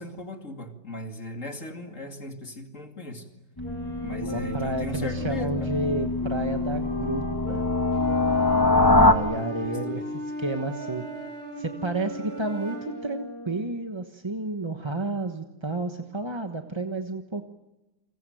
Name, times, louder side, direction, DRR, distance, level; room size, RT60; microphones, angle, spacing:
voice 1, 0.0-3.3 4.0-5.7 9.1-10.1, left 2 dB, 45° left, 4 dB, 2.8 m, -38 dB
sound 1, 3.6-10.3 10.8-13.7, left 1 dB, 60° left, 5.6 m, -40 dB
sound 2, 3.6-9.1, left 2 dB, 15° left, 1.1 m, -24 dB
voice 2, 4.2-7.6 8.9-10.0 10.4-11.0 11.6-17.4, right 2 dB, 20° right, 5 dB, 1.0 m, -31 dB
Wind instrument woodwind instrument, 7.9-13.1, right 1 dB, 35° right, 3.5 m, -37 dB
30.0 x 22.5 x 7.8 m, 1.0 s
omnidirectional pair, 1.9 m